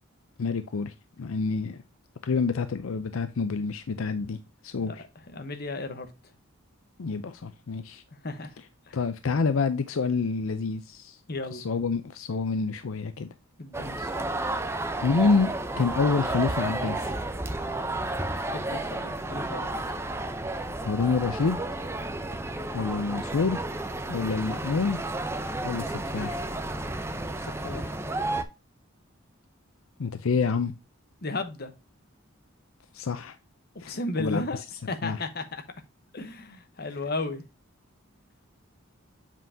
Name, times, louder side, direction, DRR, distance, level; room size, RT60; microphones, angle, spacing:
voice 1, 0.4-0.9 1.2-1.8 2.2-4.4 4.6-5.0 7.0-8.0 8.9-11.2 11.5-13.3 15.0-15.5 15.8-17.1 20.8-21.6 22.7-23.6 24.1-25.0 25.6-26.4 30.0-30.7 32.9-33.4 33.8-34.4 35.0-35.2, left 4 dB, 80° left, 0.5 m, -27 dB
voice 2, 5.3-6.1 8.2-8.5 8.9-9.0 11.3-11.6 13.6-14.3 18.5-19.7 27.4-27.9 31.2-31.7 33.9-34.6 34.9-35.6 36.1-37.4, left 2 dB, 50° left, 1.0 m, -34 dB
sound 1, 13.7-28.4, right 2 dB, 10° right, 0.6 m, -32 dB
7.5 x 5.6 x 2.7 m
head